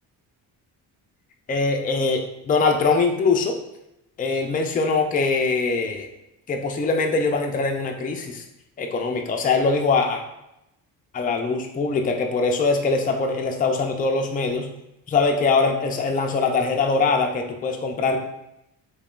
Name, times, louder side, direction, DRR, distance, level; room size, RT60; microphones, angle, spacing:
voice 1, 1.5-3.6 4.2-6.1 6.5-8.4 8.8-10.2 11.1-14.7 15.1-18.2, left 4 dB, 20° left, 3 dB, 0.4 m, -22 dB
3.6 x 2.3 x 2.4 m, 0.87 s
cardioid pair, 70°, 45 cm